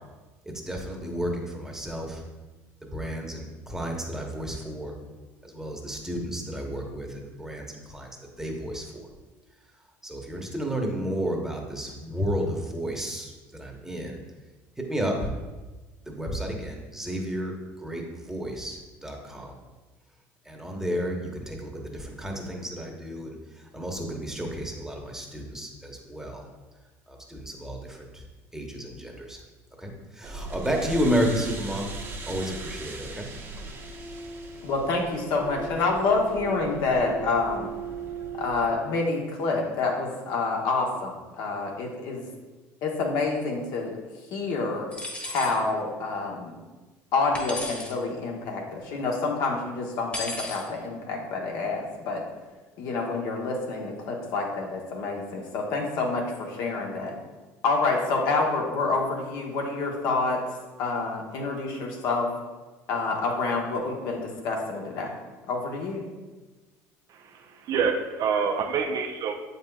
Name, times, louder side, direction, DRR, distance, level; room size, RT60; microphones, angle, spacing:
voice 1, 0.7-2.2 2.8-4.9 5.5-7.1 7.4-7.7 7.9-8.1 8.4-9.0 10.0-13.3 13.6-14.2 14.9-15.1 16.1-17.5 17.8-19.5 20.5-23.3 23.7-26.4 27.3-27.8 28.5-29.4 29.8-29.9 30.2-31.9 32.3-33.2, equal, 5° right, 1 dB, 1.1 m, -31 dB
sound 1, 30.2-38.7, right 4 dB, 35° right, 1.1 m, -38 dB
voice 2, 34.6-37.7 38.3-42.2 42.8-43.9 44.3-44.9 45.2-46.5 47.1-52.2 52.8-57.1 57.6-60.4 60.8-62.3 62.9-65.1 65.5-66.1, left 3 dB, 65° left, 0 dB, 1.2 m, -27 dB
sound 2, 44.9-45.6 47.3-47.9 50.1-50.6, left 2 dB, 20° left, 1.3 m, -34 dB
voice 3, 67.1-69.3, right 6 dB, 55° right, 5 dB, 0.6 m, -27 dB
7.4 x 5.4 x 2.3 m, 1.2 s
supercardioid pair, 95°, 7 cm